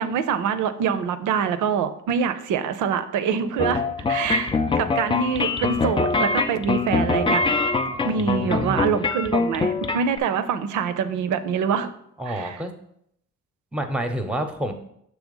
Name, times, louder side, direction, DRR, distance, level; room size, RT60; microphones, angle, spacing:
voice 1, 0.0-7.5 8.0-11.9 12.3-12.6, right 7 dB, 80° right, 11 dB, 0.6 m, -25 dB
sound 1, 3.6-10.2, left 4 dB, 15° left, 0.4 m, -24 dB
voice 2, 8.2-8.8 12.2-12.7 13.7-14.7, right 1 dB, 5° right, 6 dB, 0.8 m, -28 dB
6.2 x 3.3 x 5.3 m, 0.72 s
cardioid pair, 90°, 30 cm